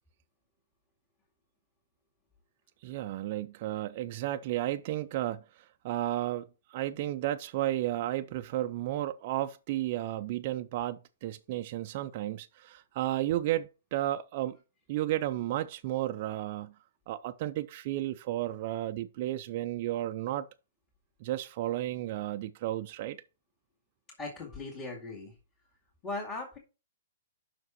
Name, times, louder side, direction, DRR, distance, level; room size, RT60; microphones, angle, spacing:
voice 1, 2.8-14.6 14.9-16.7 17.1-20.5 21.2-23.2, right 14 dB, 40° right, 0.5 m, -33 dB
voice 2, 24.2-25.3 26.0-26.6, left 3 dB, 20° left, 2.2 m, -38 dB
6.0 x 4.7 x 6.2 m
hypercardioid pair, 155°, 0 cm